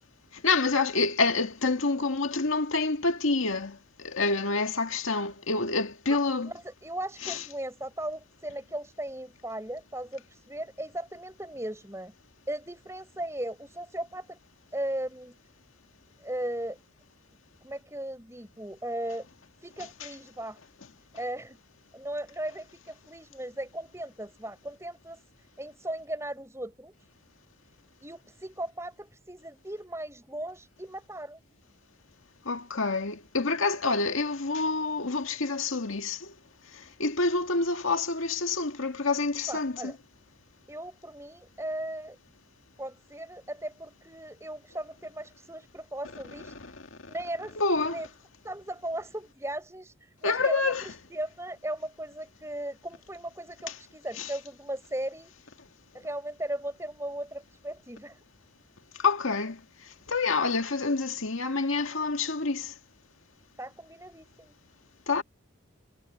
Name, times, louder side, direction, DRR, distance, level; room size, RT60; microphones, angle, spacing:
voice 1, 0.3-6.5 7.2-7.4 32.5-36.3 36.7-39.9 47.6-48.0 50.2-50.8 54.2-54.3 59.0-59.6 60.1-62.7 65.1-65.2, left 3 dB, 90° left, 2.0 m, -27 dB
voice 2, 6.4-12.1 12.5-14.4 14.7-15.4 16.2-16.8 17.6-19.3 19.6-20.6 21.1-21.6 21.9-25.2 25.6-26.9 28.0-31.4 39.5-40.0 40.7-42.2 42.8-46.5 47.1-48.1 48.4-55.3 55.9-58.2 63.6-64.6, right 1 dB, 15° right, 5.2 m, -37 dB
head